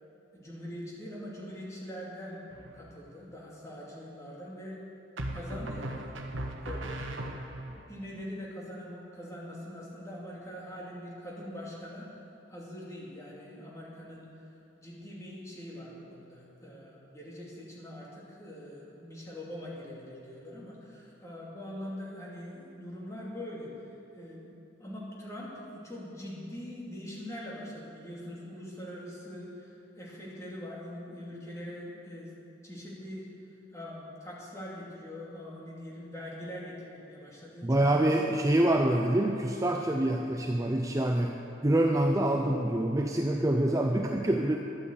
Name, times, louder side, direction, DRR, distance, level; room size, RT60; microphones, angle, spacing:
voice 1, 0.3-2.4 2.7-4.8 5.3-7.4 7.9-14.5 14.8-24.5 24.8-32.3 32.6-33.3 33.7-38.1, left 1 dB, 15° left, -5 dB, 2.6 m, -43 dB
sound 1, 2.5-3.1 5.2-7.8, right 1 dB, 80° right, 1.2 m, -38 dB
voice 2, 37.6-44.6, right 1 dB, 15° right, 2 dB, 0.5 m, -26 dB
12.0 x 8.9 x 8.0 m, 2.7 s
head